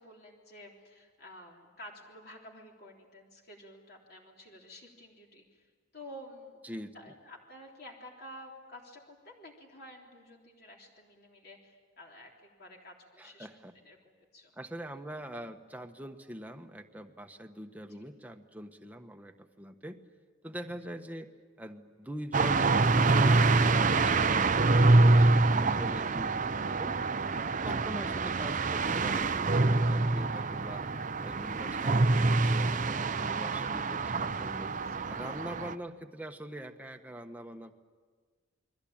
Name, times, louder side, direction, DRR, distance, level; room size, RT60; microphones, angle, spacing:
voice 1, 0.0-5.7 5.9-6.6 6.9-13.5 13.8-14.5 17.9-18.1 30.8-31.1 34.9-35.3, left 1 dB, 50° left, 0 dB, 3.5 m, -51 dB
voice 2, 6.6-6.9 13.2-13.7 14.6-20.0 20.4-21.3 21.6-27.0 27.6-30.8 31.2-34.7 35.1-37.7, equal, 10° right, 5 dB, 1.2 m, -43 dB
sound 1, 22.3-35.7, right 3 dB, 40° right, 0.7 m, -26 dB
29.0 x 22.5 x 8.8 m, 1.5 s
head